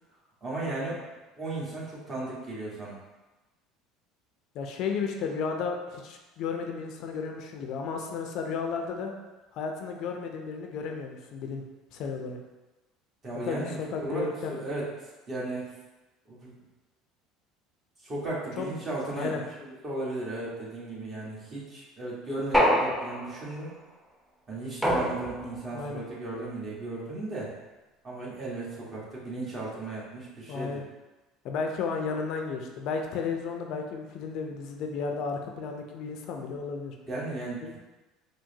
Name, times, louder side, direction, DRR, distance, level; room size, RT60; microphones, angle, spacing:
voice 1, 0.4-1.0 1.4-3.0 13.2-14.9 15.3-15.7 16.3-16.5 18.0-23.7 24.5-27.5 28.0-30.7 37.1-37.7, right 2 dB, 35° right, -6 dB, 1.3 m, -35 dB
voice 2, 4.5-9.1 9.5-11.6 11.9-12.4 13.4-14.8 18.6-18.7 19.1-19.4 25.7-26.0 30.5-30.8 31.4-36.9 37.6-37.8, left 5 dB, 60° left, 3 dB, 0.4 m, -33 dB
sound 1, 22.5-23.5 24.8-25.7, equal, 5° right, 0.7 m, -25 dB
4.5 x 2.1 x 2.7 m, 1.1 s
hypercardioid pair, 75°, 0 cm